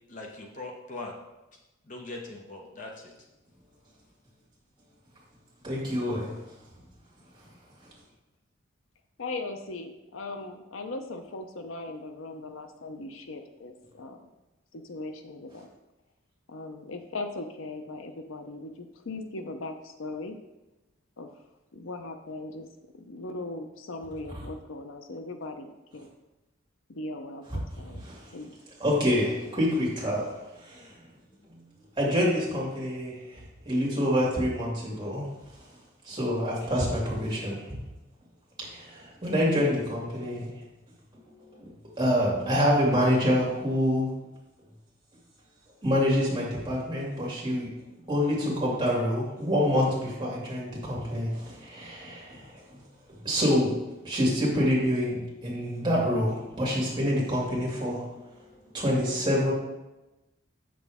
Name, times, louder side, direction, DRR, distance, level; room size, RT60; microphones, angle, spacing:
voice 1, 0.1-1.2 1.9-3.1, left 2 dB, 40° left, 0 dB, 1.0 m, -40 dB
voice 2, 5.6-6.3 28.0-28.3 28.8-31.0 31.5-31.6 32.0-35.3 36.0-37.8 38.6-40.5 41.4-41.7 42.0-44.1 45.8-52.8 53.1-53.7 54.0-58.3 58.7-59.5, equal, 20° right, -5 dB, 2.3 m, -27 dB
voice 3, 9.2-14.2 14.7-15.7 16.5-20.4 21.2-21.3 21.7-22.7 22.9-26.1 26.9-28.0 28.3-28.5, left 2 dB, 80° left, 6 dB, 0.7 m, -39 dB
8.1 x 6.3 x 3.6 m, 1.0 s
head